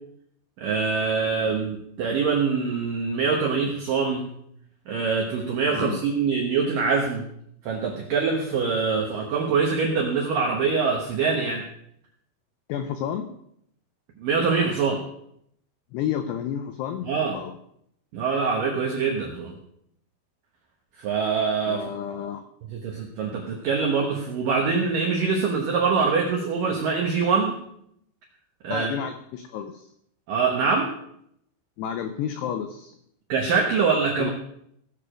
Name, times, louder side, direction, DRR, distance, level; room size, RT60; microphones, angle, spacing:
voice 1, 0.6-4.3 4.9-7.3 7.6-11.6 14.2-15.0 17.0-17.4 18.1-19.6 21.0-21.8 22.7-27.6 28.6-28.9 30.3-30.9 33.3-34.3, right 5 dB, 80° right, 1 dB, 1.9 m, -24 dB
voice 2, 12.7-13.3 15.9-17.6 21.7-22.4 28.7-29.9 31.8-33.0 34.2-34.3, left 9 dB, 85° left, 8 dB, 2.3 m, -31 dB
16.5 x 6.9 x 5.0 m, 0.73 s
omnidirectional pair, 5.6 m